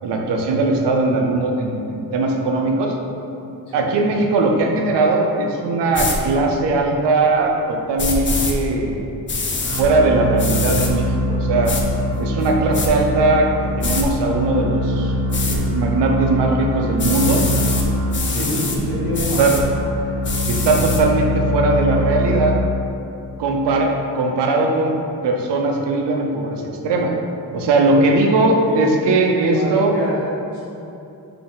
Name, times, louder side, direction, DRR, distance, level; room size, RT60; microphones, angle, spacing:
voice 1, 0.0-2.9 3.7-9.1 9.8-11.8 12.2-15.1 15.4-17.4 18.3-18.5 19.4-19.5 20.5-22.6 23.4-25.0 25.2-27.1 27.5-29.9, right 2 dB, 90° right, 1 dB, 0.6 m, -19 dB
voice 2, 3.7-4.0 18.3-19.6 27.9-28.1 28.7-30.6, equal, 60° left, -12 dB, 1.2 m, -26 dB
sound 1, 5.9-6.2 8.0-8.5 9.3-9.8 10.4-10.9 11.6-11.8 12.4-12.9 13.8-14.0 15.3-15.6 17.0-17.8 18.1-18.8 19.1-19.6 20.2-21.0, left 3 dB, 30° left, 0.5 m, -24 dB
sound 2, 9.6-23.0, equal, 40° right, 0.8 m, -23 dB
4.0 x 2.8 x 3.8 m, 2.8 s
cardioid pair, 90°, 40 cm